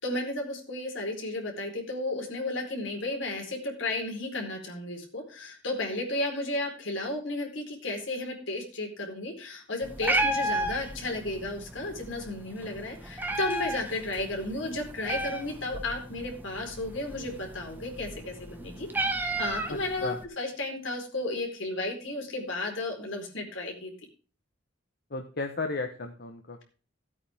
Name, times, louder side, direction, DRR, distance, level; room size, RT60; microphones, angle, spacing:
voice 1, 0.0-23.9, left 2 dB, 75° left, 2 dB, 4.4 m, -33 dB
Meow, 9.8-20.2, right 1 dB, 10° right, 1.5 m, -34 dB
voice 2, 19.7-20.2 25.1-26.6, left 3 dB, 55° left, 4 dB, 1.3 m, -34 dB
16.0 x 8.8 x 3.6 m, 0.37 s
head